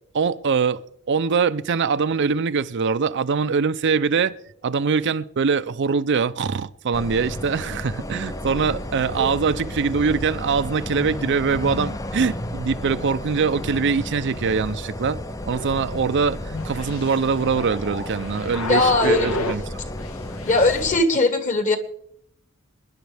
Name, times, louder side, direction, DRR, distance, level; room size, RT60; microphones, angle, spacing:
voice 1, 0.1-0.8 1.1-4.3 4.6-19.6, right 5 dB, 60° right, 0.5 m, -23 dB
sound 1, 6.9-21.0, left 1 dB, 15° left, 0.5 m, -33 dB
sound 2, 15.5-19.7 20.0-20.9, left 2 dB, 80° left, 1.3 m, -32 dB
voice 2, 18.7-19.3 20.5-21.8, left 2 dB, 35° left, 1.7 m, -19 dB
26.5 x 10.5 x 3.4 m
head